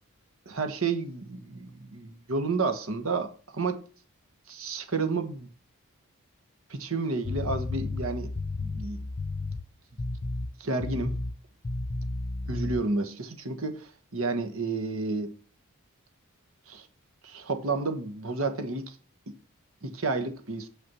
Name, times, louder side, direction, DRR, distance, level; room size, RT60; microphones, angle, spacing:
voice 1, 0.5-3.8 4.5-5.5 6.7-8.3 8.6-9.0 10.6-11.1 12.5-15.3 16.7-16.9 17.2-19.0 19.3-19.4 19.8-20.7, right 3 dB, 70° right, 1.3 m, -31 dB
sound 1, 7.2-9.7 10.0-10.5 10.8-11.3 11.6-12.8, left 2 dB, 30° left, 0.4 m, -32 dB
7.8 x 5.8 x 6.2 m
head